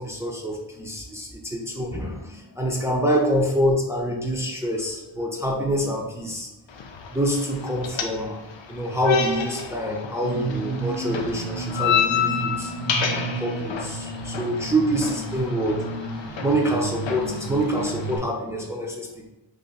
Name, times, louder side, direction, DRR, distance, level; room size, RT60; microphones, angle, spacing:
voice 1, 0.0-6.5 7.1-8.4 8.7-12.7 13.2-15.9 16.4-19.3, equal, 5° right, -2 dB, 0.5 m, -26 dB
sound 1, 6.7-18.2, left 7 dB, 85° left, 0.5 m, -30 dB
sound 2, 10.2-18.2, right 4 dB, 55° right, 0.6 m, -32 dB
2.6 x 2.5 x 4.0 m, 0.96 s
wide cardioid pair, 60°, 44 cm